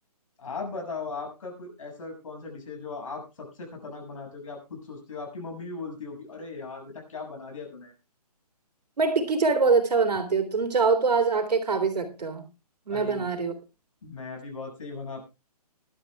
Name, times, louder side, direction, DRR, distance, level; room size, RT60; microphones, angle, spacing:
voice 1, 0.4-7.9 12.9-13.3 14.0-15.2, left 4 dB, 55° left, 2 dB, 6.6 m, -38 dB
voice 2, 9.0-12.5 12.9-13.5, right 4 dB, 80° right, 7 dB, 3.5 m, -24 dB
21.5 x 12.5 x 2.3 m, 0.27 s
hypercardioid pair, 170°, 20 cm